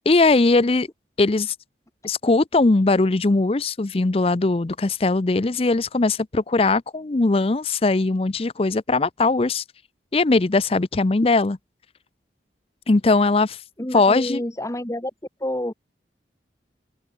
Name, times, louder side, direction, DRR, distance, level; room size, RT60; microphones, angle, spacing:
voice 1, 0.1-0.9 1.2-1.5 2.0-9.6 10.1-11.6 12.9-13.6 13.9-14.4, left 3 dB, 35° left, 0.5 m, -20 dB
voice 2, 13.8-15.1 15.4-15.7, left 1 dB, 20° left, 1.2 m, -28 dB
open air
head